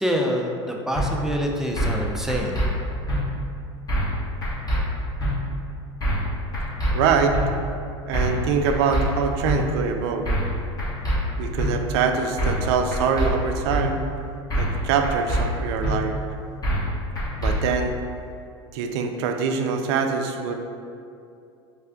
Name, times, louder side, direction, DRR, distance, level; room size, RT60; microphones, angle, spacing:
voice 1, 0.0-2.7, equal, 5° right, 0 dB, 0.4 m, -26 dB
sound 1, 1.0-1.1 1.8-2.0 2.3-2.7 3.1-3.2 3.9-4.2 4.4-4.8 5.2-5.3 6.0-6.3 6.5-6.9 7.3-7.5 8.1-8.4 8.7-9.0 9.4-9.6 10.3-10.5 10.8-11.2 11.6-11.7 12.4-12.7 12.9-13.3 13.7-13.8 14.5-14.8 15.0-15.4 15.8-15.9 16.6-16.9 17.2-17.5, right 1 dB, 25° left, 1.2 m, -24 dB
voice 2, 6.9-7.4 8.1-10.3 11.4-14.0 14.6-16.2 17.4-17.9 18.7-20.5, right 6 dB, 65° right, 5 dB, 0.4 m, -24 dB
3.3 x 2.2 x 3.6 m, 2.5 s
hypercardioid pair, 95°, 14 cm